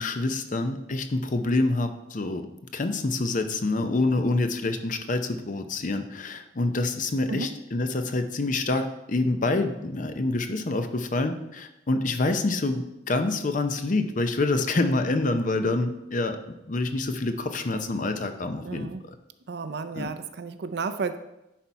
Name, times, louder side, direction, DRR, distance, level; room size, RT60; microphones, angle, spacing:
voice 1, 0.0-2.5 2.7-16.4 16.7-19.1 20.0-20.1, left 2 dB, 45° left, 8 dB, 0.6 m, -27 dB
voice 2, 18.6-19.0 19.5-21.2, right 4 dB, 60° right, 10 dB, 0.5 m, -32 dB
10.0 x 4.2 x 4.5 m, 0.91 s
head